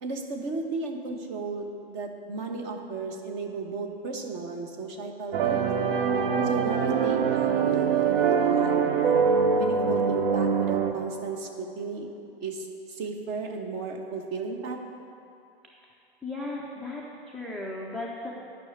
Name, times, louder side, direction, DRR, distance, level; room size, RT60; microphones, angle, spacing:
voice 1, 0.0-5.7 6.4-9.2 9.5-12.1 12.4-14.8, right 4 dB, 35° right, 3 dB, 1.2 m, -34 dB
sound 1, 5.3-10.9, right 6 dB, 55° right, 0.8 m, -24 dB
voice 2, 16.2-18.3, left 2 dB, ahead, -4 dB, 0.3 m, -36 dB
9.5 x 5.7 x 8.2 m, 2.8 s
figure-of-eight pair, 100°, 32 cm